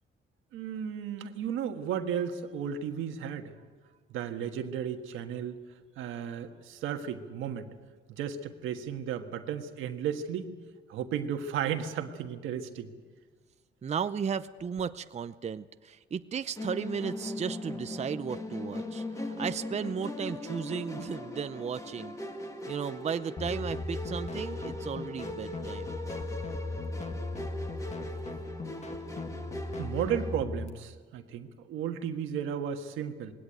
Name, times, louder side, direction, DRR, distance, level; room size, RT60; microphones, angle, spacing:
voice 1, 0.5-3.5 4.1-5.6 6.0-7.7 8.2-10.5 10.9-12.9 29.8-33.3, right 8 dB, 90° right, 6 dB, 1.5 m, -34 dB
voice 2, 13.8-22.2 22.7-25.9, right 7 dB, 35° right, 11 dB, 0.6 m, -35 dB
Musical instrument, 16.6-30.4, left 1 dB, 15° left, 2.1 m, -39 dB
sound 1, 23.4-30.7, left 2 dB, 35° left, 1.8 m, -38 dB
20.0 x 17.0 x 9.1 m, 1.5 s
cardioid pair, 90°, 20 cm